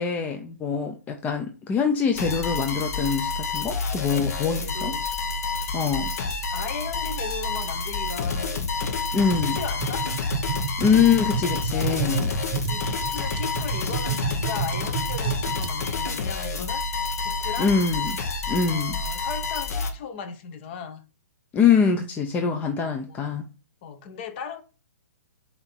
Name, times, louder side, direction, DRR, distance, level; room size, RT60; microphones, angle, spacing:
voice 1, 0.0-4.9 5.7-6.1 9.1-9.6 10.8-12.3 17.6-18.1 18.5-19.0 21.5-23.4, left 6 dB, 15° left, 0.6 m, -24 dB
sound 1, 2.1-19.9, left 4 dB, 60° left, 1.5 m, -29 dB
voice 2, 4.5-5.1 5.9-10.1 12.1-12.3 12.7-17.8 18.7-21.0 23.1-23.4 23.8-24.6, left 7 dB, 40° left, 1.0 m, -37 dB
sound 2, 9.4-15.7, right 10 dB, 40° right, 0.9 m, -31 dB
8.5 x 2.9 x 4.4 m
hypercardioid pair, 145°, 9 cm